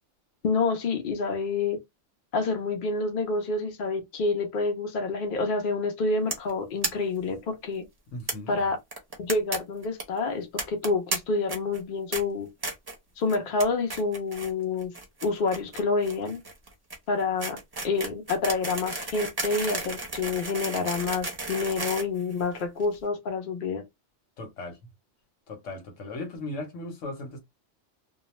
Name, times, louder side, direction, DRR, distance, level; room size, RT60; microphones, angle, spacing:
voice 1, 0.4-1.8 2.3-7.8 8.5-8.8 9.2-12.5 13.2-14.9 15.2-16.4 17.1-17.6 17.8-23.8, left 3 dB, 55° left, 0.7 m, -28 dB
sound 1, 6.3-6.5 6.8-6.9 7.2-7.3 7.5-7.6 8.3-8.4 8.9-9.6 9.8-10.0 10.6-11.2 11.5-11.8 12.1-12.2 12.6-13.0 13.3-13.6 13.9-14.5 14.8-22.8, right 2 dB, 25° right, 0.5 m, -33 dB
voice 2, 8.1-8.6 24.4-24.8 25.5-27.4, left 2 dB, 75° left, 1.1 m, -37 dB
2.3 x 2.2 x 2.9 m
omnidirectional pair, 1.3 m